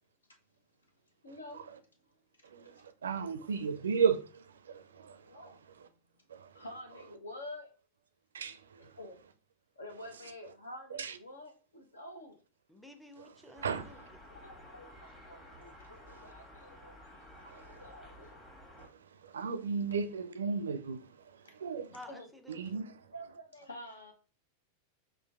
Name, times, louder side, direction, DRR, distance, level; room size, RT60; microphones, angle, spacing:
voice 1, 1.2-1.6 3.8-3.9 5.3-5.5 6.5-7.7 9.0-9.2 9.8-12.3 14.3-18.4 21.9-22.3 23.1-24.1, left 1 dB, 75° left, 0.9 m, -48 dB
voice 2, 2.4-5.9 6.3-6.6 8.3-8.9 10.9-11.2 13.2-13.3 13.5-14.1 16.1-16.2 17.5-17.8 18.8-21.9 22.5-23.1, right 6 dB, 65° right, 0.4 m, -35 dB
voice 3, 12.7-14.0 21.9-22.6, left 1 dB, ahead, 0.5 m, -52 dB
sound 1, 13.6-18.9, left 1 dB, 20° left, 1.3 m, -53 dB
6.0 x 2.4 x 2.4 m
figure-of-eight pair, 90°, 0 cm